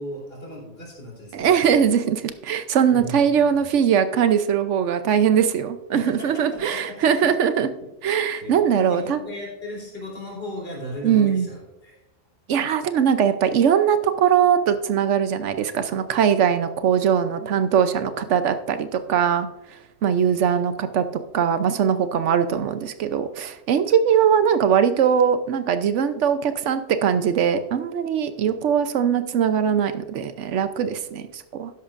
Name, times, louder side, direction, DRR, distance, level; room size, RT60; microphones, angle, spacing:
voice 1, 0.0-1.9 2.9-3.7 5.9-7.3 8.4-12.0 20.2-20.4 30.8-31.0, left 1 dB, 55° left, -3 dB, 3.6 m, -37 dB
voice 2, 1.3-7.7 8.0-9.2 11.0-11.5 12.5-19.5 20.0-21.0 21.3-31.7, right 8 dB, 85° right, 10 dB, 1.0 m, -21 dB
12.5 x 10.5 x 2.5 m, 0.94 s
omnidirectional pair, 1.2 m